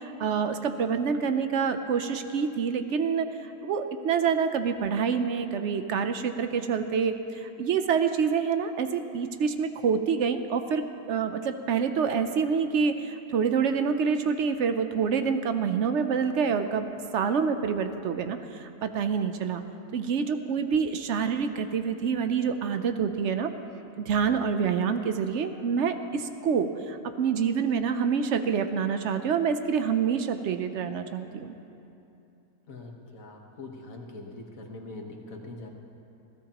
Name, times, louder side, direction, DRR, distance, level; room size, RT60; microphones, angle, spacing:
voice 1, 0.0-3.3 3.6-19.6 19.9-23.5 24.0-31.5, right 6 dB, 60° right, 8 dB, 0.8 m, -27 dB
voice 2, 32.7-35.7, left 2 dB, 60° left, 2 dB, 1.7 m, -42 dB
20.5 x 15.5 x 3.0 m, 2.8 s
omnidirectional pair, 1.6 m